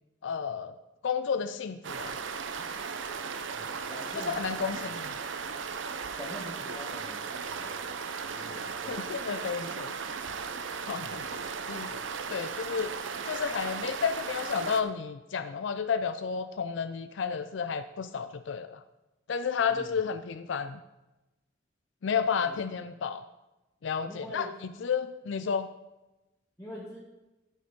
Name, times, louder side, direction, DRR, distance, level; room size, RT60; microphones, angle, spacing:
voice 1, 0.2-0.7 1.0-2.2 4.1-5.0 8.9-9.9 10.9-12.0 12.3-12.9 13.2-18.8 19.3-20.8 22.0-23.3 23.8-24.5 24.8-25.7, left 6 dB, 65° left, 11 dB, 0.4 m, -31 dB
sound 1, 1.8-14.8, right 5 dB, 70° right, 0.7 m, -36 dB
voice 2, 3.5-4.9 6.2-7.9 8.2-9.1 11.0-11.3 19.7-19.9 22.4-22.5 24.0-24.5 26.6-27.0, left 1 dB, 15° left, -6 dB, 1.4 m, -45 dB
12.5 x 5.3 x 5.2 m, 1.0 s
head